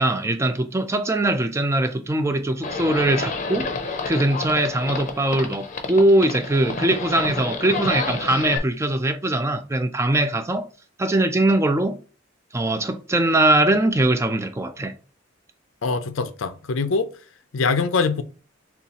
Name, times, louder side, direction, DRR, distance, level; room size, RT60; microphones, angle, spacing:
voice 1, 0.0-10.7 11.0-12.0 12.5-14.9, right 1 dB, 15° right, 0.3 m, -21 dB
Livestock farm animals working animals, 2.6-8.6, left 3 dB, 40° left, 0.6 m, -30 dB
voice 2, 15.8-17.1 17.5-18.2, left 4 dB, 85° left, 0.5 m, -23 dB
6.8 x 2.4 x 2.9 m
head